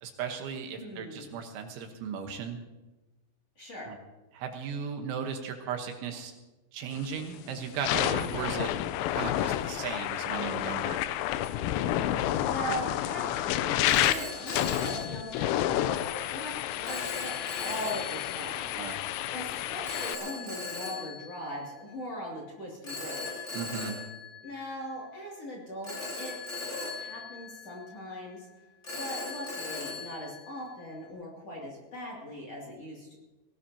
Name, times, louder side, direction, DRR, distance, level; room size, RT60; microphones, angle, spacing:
voice 1, 0.0-2.6 3.9-4.0 4.3-6.3 6.7-8.7 9.1-11.0 18.7-19.0 23.5-24.0, right 7 dB, 75° right, 4 dB, 3.4 m, -36 dB
voice 2, 0.8-1.3 3.6-3.9 12.4-17.3 17.6-18.8 19.3-23.6 24.4-28.5 29.0-33.2, equal, 40° left, -2 dB, 2.9 m, -40 dB
sound 1, 7.0-7.2 7.7-20.2, left 13 dB, 85° left, 3.3 m, -30 dB
Telephone, 13.8-15.8 16.8-18.6 19.8-22.0 22.8-25.2 25.8-28.2 28.8-31.0, left 3 dB, 20° left, 2.6 m, -39 dB
20.5 x 17.5 x 2.8 m, 1.1 s
omnidirectional pair, 5.8 m